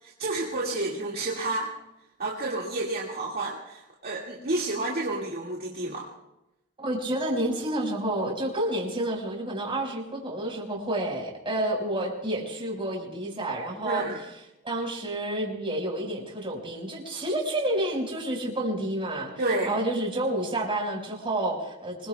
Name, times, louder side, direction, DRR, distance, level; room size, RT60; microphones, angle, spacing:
voice 1, 0.0-1.7 2.2-6.1 13.8-14.2 19.4-19.7, right 2 dB, 45° right, -4 dB, 2.1 m, -30 dB
voice 2, 6.8-14.0 14.6-19.3 19.6-22.1, right 1 dB, 25° right, -1 dB, 5.1 m, -29 dB
26.0 x 21.0 x 2.3 m, 0.91 s
head